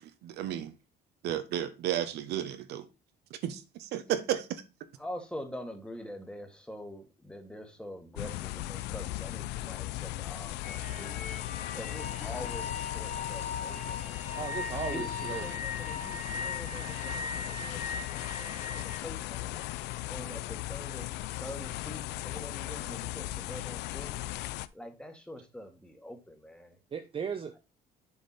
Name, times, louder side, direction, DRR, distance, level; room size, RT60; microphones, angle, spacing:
voice 1, 0.2-0.7 1.2-2.9 3.4-3.5 3.9-4.6, right 11 dB, 80° right, 1.0 m, -32 dB
voice 2, 5.0-11.1 11.7-14.6 14.9-18.6 19.0-19.7 20.1-21.1 21.4-24.1 24.7-26.7, equal, 5° left, 1.6 m, -45 dB
sound 1, 8.2-24.7, left 16 dB, 90° left, 0.5 m, -37 dB
sound 2, 10.6-19.0, left 4 dB, 50° left, 2.8 m, -39 dB
voice 3, 14.3-15.6 26.9-27.6, right 6 dB, 35° right, 0.8 m, -37 dB
7.0 x 5.2 x 4.1 m
cardioid pair, 110°, 17 cm